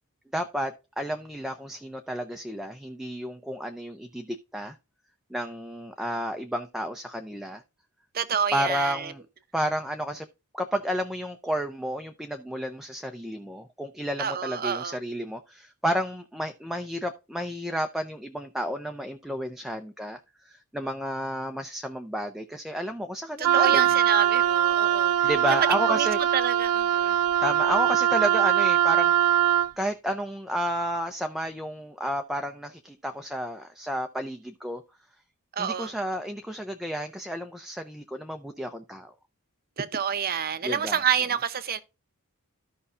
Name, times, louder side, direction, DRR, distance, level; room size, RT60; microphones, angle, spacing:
voice 1, 0.3-4.7 5.3-7.6 8.5-9.2 9.5-10.3 10.5-20.2 20.4-23.8 25.2-26.2 27.4-29.3 29.8-34.8 35.6-39.1 40.6-41.0, equal, ahead, 0.6 m, -31 dB
voice 2, 8.1-9.1 14.2-15.0 23.4-25.3 25.9-26.1 26.3-27.2 35.6-35.9 39.8-41.8, right 7 dB, 45° right, 0.7 m, -28 dB
Wind instrument woodwind instrument, 23.4-29.7, right 10 dB, 85° right, 0.4 m, -22 dB
13.5 x 5.5 x 2.5 m
head